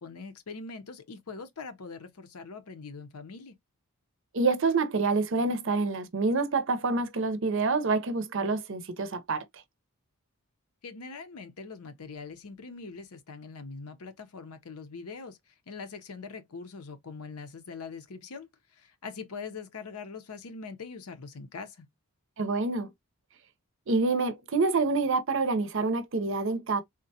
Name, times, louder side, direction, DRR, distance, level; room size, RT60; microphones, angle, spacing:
voice 1, 0.0-3.6 10.8-15.4 15.7-21.9, left 4 dB, 80° left, 0.7 m, -42 dB
voice 2, 4.3-9.4 22.4-22.9 23.9-26.8, right 3 dB, 55° right, 0.6 m, -27 dB
3.7 x 2.1 x 2.7 m
head